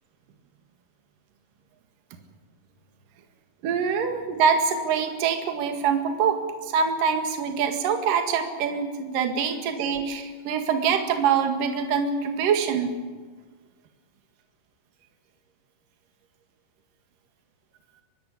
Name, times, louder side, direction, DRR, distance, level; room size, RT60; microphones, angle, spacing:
voice 1, 3.6-13.0, right 6 dB, 55° right, 5 dB, 3.0 m, -24 dB
24.5 x 12.5 x 10.0 m, 1.4 s
omnidirectional pair, 5.4 m